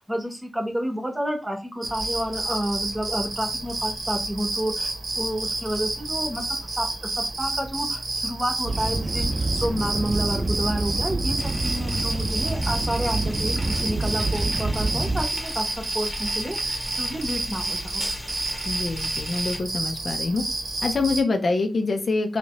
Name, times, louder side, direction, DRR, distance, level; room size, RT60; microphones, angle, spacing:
voice 1, 0.0-18.0, equal, 15° right, 3 dB, 0.9 m, -30 dB
sound 1, 1.8-21.2, right 2 dB, 55° right, 1.0 m, -30 dB
sound 2, 8.7-15.3, right 2 dB, 35° right, 0.6 m, -27 dB
sound 3, 11.4-19.6, left 1 dB, 25° left, 1.0 m, -39 dB
voice 2, 18.7-20.4 20.8-22.4, left 3 dB, 55° left, 6 dB, 0.6 m, -25 dB
3.3 x 2.8 x 3.0 m, 0.28 s
wide cardioid pair, 110°, 0 cm